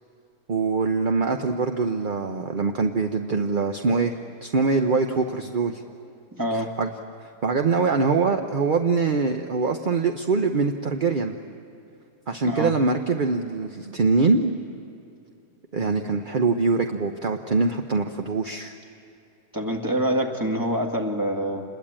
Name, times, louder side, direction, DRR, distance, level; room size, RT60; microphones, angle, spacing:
voice 1, 0.5-5.8 6.5-6.9 7.2-11.4 12.3-14.5 15.7-18.7, right 4 dB, 40° right, 5 dB, 0.8 m, -23 dB
voice 2, 6.3-6.7 12.4-12.7 19.5-21.6, right 1 dB, 10° right, 3 dB, 2.0 m, -26 dB
28.0 x 21.5 x 8.9 m, 2.7 s
omnidirectional pair, 1.8 m